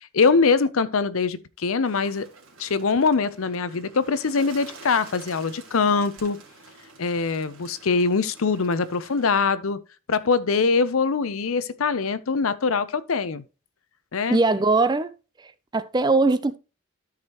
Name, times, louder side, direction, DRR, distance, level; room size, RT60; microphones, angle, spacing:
voice 1, 0.1-2.3 2.6-6.4 7.0-9.8 10.1-13.4 14.1-14.4, left 4 dB, 75° left, 0.6 m, -23 dB
Bird, 1.8-9.4, right 3 dB, 70° right, 2.7 m, -48 dB
voice 2, 14.3-15.1 15.7-16.6, right 3 dB, 20° right, 0.4 m, -20 dB
13.0 x 4.9 x 2.9 m
head